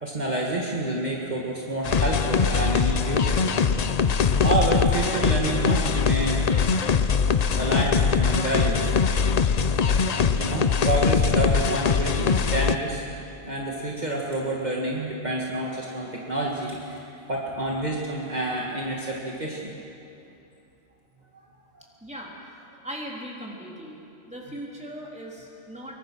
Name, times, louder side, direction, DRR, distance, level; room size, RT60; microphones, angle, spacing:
voice 1, 0.0-3.4 4.4-6.5 7.6-8.9 10.4-13.0 13.4-17.0 17.3-19.7 21.3-21.4, right 2 dB, 40° right, -3 dB, 2.1 m, -28 dB
sound 1, 1.8-12.8, left 6 dB, 40° left, 0.7 m, -22 dB
voice 2, 22.0-22.3 22.8-24.0 24.3-26.0, equal, 5° right, -3 dB, 3.7 m, -38 dB
25.0 x 23.0 x 6.2 m, 2.7 s
omnidirectional pair, 1.2 m